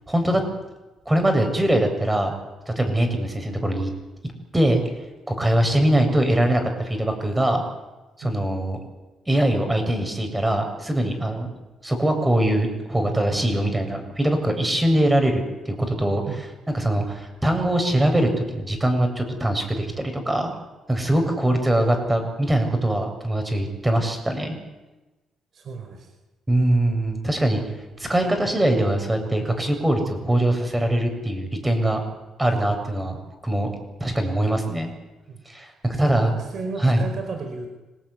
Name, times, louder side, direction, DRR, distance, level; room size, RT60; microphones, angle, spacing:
voice 1, 0.1-0.4 1.1-2.3 2.7-3.9 4.5-4.8 5.3-7.6 8.2-8.8 9.3-11.5 11.8-16.2 16.7-20.5 20.9-24.6 26.5-27.6 28.0-32.0 32.4-33.2 33.4-33.7 34.0-34.9 35.5-36.4 36.8-37.0, right 1 dB, 15° right, 5 dB, 7.3 m, -22 dB
voice 2, 25.5-26.1 35.3-35.4 36.0-37.7, right 4 dB, 55° right, 4 dB, 5.2 m, -34 dB
27.0 x 19.0 x 10.0 m, 1.1 s
cardioid pair, 90°, 0 cm